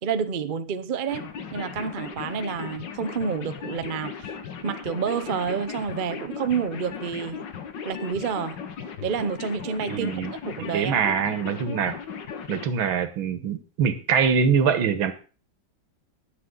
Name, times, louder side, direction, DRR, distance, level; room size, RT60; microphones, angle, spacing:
voice 1, 0.0-4.3 4.6-7.4 7.8-8.6 9.0-11.0, right 6 dB, 60° right, 0.5 m, -29 dB
sound 1, 1.1-12.7, left 6 dB, 65° left, 1.9 m, -37 dB
voice 2, 9.9-10.3 10.6-11.9 12.5-15.1, right 6 dB, 85° right, 2.0 m, -24 dB
21.0 x 7.6 x 3.8 m
omnidirectional pair, 2.1 m